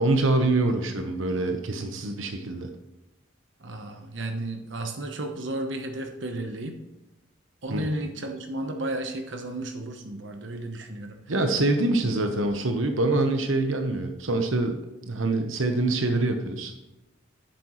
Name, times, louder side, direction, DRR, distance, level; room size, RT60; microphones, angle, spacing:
voice 1, 0.0-2.7 7.7-7.9 11.3-14.8 15.0-16.9, right 2 dB, 90° right, 5 dB, 1.0 m, -25 dB
voice 2, 3.6-6.8 7.6-11.3, right 1 dB, 65° right, 4 dB, 1.0 m, -33 dB
10.5 x 8.5 x 3.1 m, 1.0 s
head